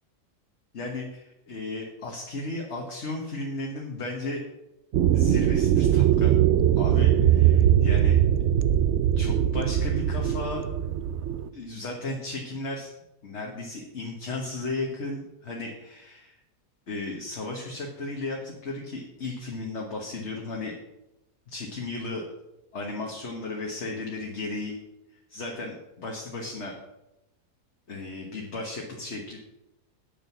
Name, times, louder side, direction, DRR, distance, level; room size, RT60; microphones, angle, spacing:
voice 1, 0.7-4.4 5.1-6.4 6.8-8.2 9.1-10.7 11.5-12.9 13.2-16.4 16.9-20.8 21.5-22.2 22.7-24.8 25.3-26.8 27.9-29.4, left 2 dB, 45° left, -1 dB, 1.6 m, -35 dB
sound 1, 4.9-11.5, right 10 dB, 75° right, 0.6 m, -21 dB
8.9 x 7.0 x 6.0 m, 0.90 s
omnidirectional pair, 1.7 m